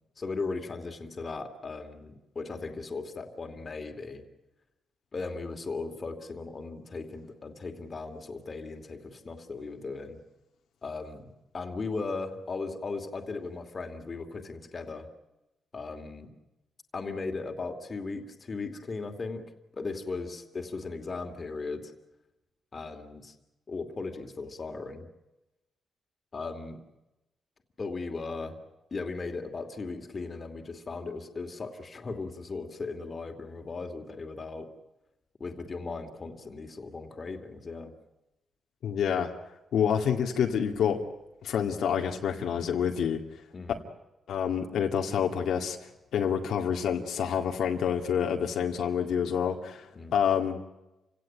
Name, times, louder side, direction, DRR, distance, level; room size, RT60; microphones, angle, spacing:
voice 1, 0.2-4.2 5.1-10.2 10.8-15.1 15.7-16.3 16.9-19.4 19.7-21.9 22.7-23.3 23.7-25.1 26.3-26.8 27.8-28.6 28.9-34.7 35.4-37.9 43.5-43.9 49.9-50.2, left 3 dB, 30° left, 4 dB, 2.7 m, -37 dB
voice 2, 38.8-39.3 39.7-41.0 41.4-43.2 44.3-45.8 46.1-49.9 50.1-50.6, left 8 dB, 80° left, 3 dB, 2.0 m, -27 dB
28.5 x 17.0 x 9.0 m, 0.98 s
cardioid pair, 135°, 0 cm